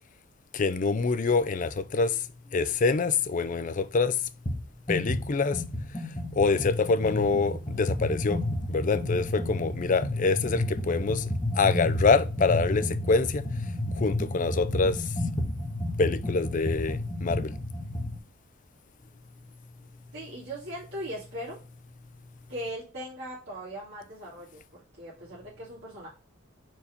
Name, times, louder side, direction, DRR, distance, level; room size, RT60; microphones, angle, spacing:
voice 1, 0.5-2.1 2.5-4.1 4.9-5.6 6.4-8.4 8.7-11.2 11.6-13.4 14.0-15.0 16.0-17.5, left 4 dB, 40° left, 0.4 m, -25 dB
sound 1, 4.5-4.6 4.9-18.2, left 1 dB, 25° left, 1.4 m, -31 dB
voice 2, 20.1-21.6 22.5-26.1, equal, 60° right, 2.4 m, -39 dB
4.6 x 4.2 x 5.0 m
head